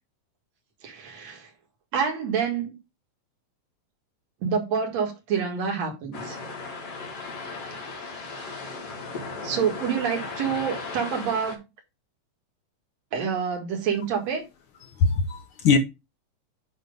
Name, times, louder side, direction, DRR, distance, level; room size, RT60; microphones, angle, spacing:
voice 1, 0.8-1.5 1.9-2.8 4.4-6.4 9.4-11.6 13.1-14.4, right 6 dB, 65° right, 2.8 m, -27 dB
sound 1, 6.1-11.6, left 3 dB, 55° left, 2.9 m, -36 dB
voice 2, 14.8-15.8, left 5 dB, 75° left, 1.2 m, -22 dB
9.1 x 3.1 x 5.2 m
omnidirectional pair, 3.3 m